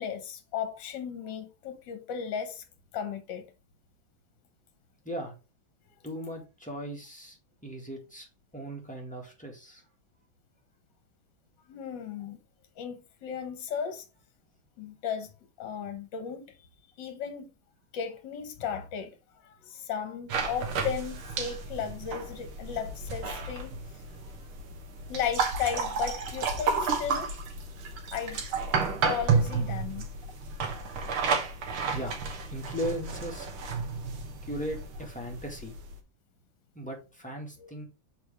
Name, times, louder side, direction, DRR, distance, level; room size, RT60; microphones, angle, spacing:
voice 1, 0.0-2.6 2.9-3.5 11.7-12.4 12.8-14.1 14.8-15.3 15.6-16.4 17.0-17.5 17.9-24.2 25.1-27.3 28.1-28.4 28.9-30.1 37.6-37.7, left 8 dB, 65° left, 1.7 m, -35 dB
voice 2, 6.0-7.4 7.6-8.3 8.5-9.8 31.9-32.2 32.5-33.5 34.4-35.8 36.8-37.8, equal, 5° left, 1.8 m, -37 dB
sound 1, 20.3-36.0, right 5 dB, 85° right, 2.0 m, -32 dB
6.2 x 5.0 x 3.4 m
omnidirectional pair, 2.3 m